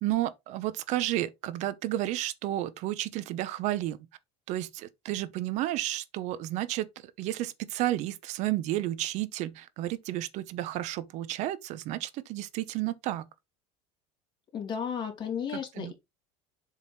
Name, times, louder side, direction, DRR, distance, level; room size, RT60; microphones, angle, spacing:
voice 1, 0.0-4.0 4.5-6.9 7.2-13.3 15.8-15.9, right 14 dB, 55° right, 0.9 m, -31 dB
voice 2, 14.5-15.9, left 7 dB, 30° left, 2.6 m, -34 dB
7.4 x 3.7 x 4.3 m
supercardioid pair, 135°, 15 cm